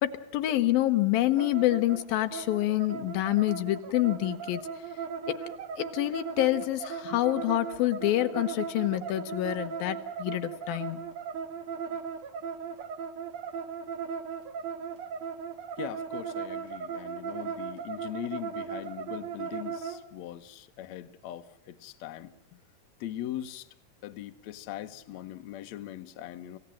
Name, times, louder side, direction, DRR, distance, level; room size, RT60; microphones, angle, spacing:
voice 1, 0.0-4.6 5.3-5.5 5.8-11.0, left 15 dB, 90° left, 2.9 m, -27 dB
sound 1, 1.4-20.0, right 6 dB, 60° right, 2.1 m, -37 dB
voice 2, 15.8-22.3 23.0-23.7 24.0-26.6, left 12 dB, 65° left, 1.9 m, -40 dB
27.5 x 16.5 x 7.5 m
omnidirectional pair, 4.1 m